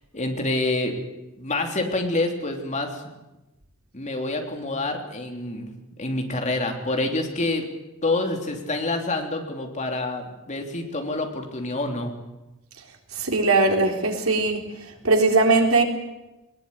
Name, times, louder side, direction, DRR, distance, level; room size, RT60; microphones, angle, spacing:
voice 1, 0.1-1.0 1.4-3.0 3.9-7.7 8.0-12.1, left 2 dB, 35° left, 3 dB, 3.4 m, -27 dB
voice 2, 13.1-14.6 15.0-15.8, right 3 dB, 90° right, 3 dB, 4.0 m, -19 dB
20.0 x 20.0 x 9.8 m, 0.99 s
head